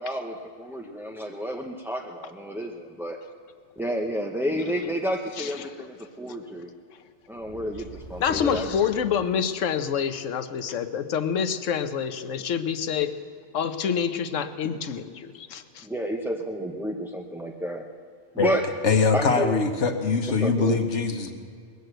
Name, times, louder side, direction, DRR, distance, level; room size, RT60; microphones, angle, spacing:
voice 1, 0.0-3.2 3.8-6.7 7.3-8.7 15.8-17.8 18.3-18.6 19.1-19.6 20.4-20.8, equal, 5° right, 0 dB, 0.5 m, -30 dB
sound 1, 7.3-10.0, right 1 dB, 60° right, 4.0 m, -43 dB
voice 2, 8.2-13.1 13.5-15.9, left 7 dB, 90° left, 10 dB, 1.2 m, -27 dB
voice 3, 18.8-21.3, left 4 dB, 70° left, 6 dB, 1.4 m, -22 dB
20.5 x 8.1 x 7.8 m, 2.3 s
omnidirectional pair, 1.3 m